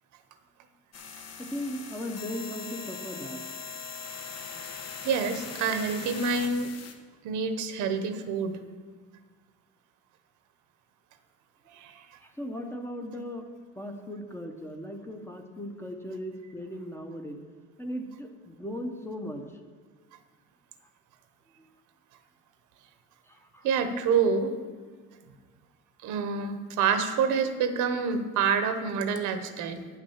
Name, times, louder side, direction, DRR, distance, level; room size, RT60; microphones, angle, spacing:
sound 1, 0.9-6.9, left 5 dB, 55° left, 1.1 m, -40 dB
voice 1, 1.4-3.4 12.2-17.4 17.8-19.4 21.6-21.7 23.3-23.7, equal, 10° left, 4 dB, 0.8 m, -37 dB
voice 2, 5.0-6.7 7.2-8.6 11.7-12.0 23.6-24.6 26.0-29.9, right 5 dB, 75° right, 9 dB, 1.0 m, -27 dB
9.6 x 6.0 x 7.1 m, 1.5 s
cardioid pair, 140°, 30 cm